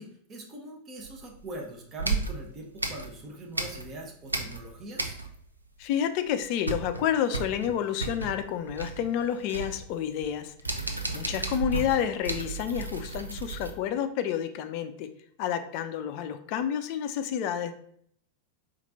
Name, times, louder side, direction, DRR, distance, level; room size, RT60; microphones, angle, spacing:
voice 1, 0.0-5.2, right 1 dB, 25° right, 1 dB, 0.9 m, -42 dB
sound 1, 1.0-1.5 2.0-4.0 4.3-5.6 5.8-5.9 6.3-13.7, right 3 dB, 85° right, 0.5 m, -34 dB
voice 2, 5.8-10.5 11.1-15.1 15.4-17.7, left 9 dB, 45° left, 9 dB, 0.4 m, -29 dB
4.2 x 2.6 x 4.0 m, 0.65 s
figure-of-eight pair, 90°, 0 cm